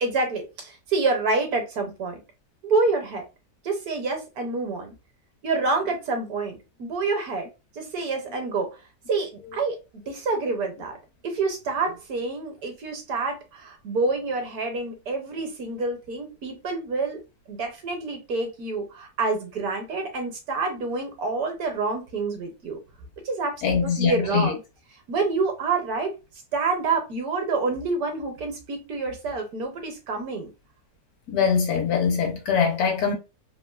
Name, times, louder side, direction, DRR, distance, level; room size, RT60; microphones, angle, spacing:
voice 1, 0.0-2.2 2.6-3.2 3.6-4.9 5.4-7.5 7.8-8.7 9.1-9.8 10.1-11.0 11.2-17.2 17.5-22.8 23.2-24.6 25.1-26.1 26.5-30.5, right 3 dB, 70° right, 1.1 m, -27 dB
voice 2, 23.6-24.5 31.3-33.1, left 6 dB, 70° left, 1.0 m, -23 dB
3.1 x 2.4 x 2.2 m
omnidirectional pair, 1.9 m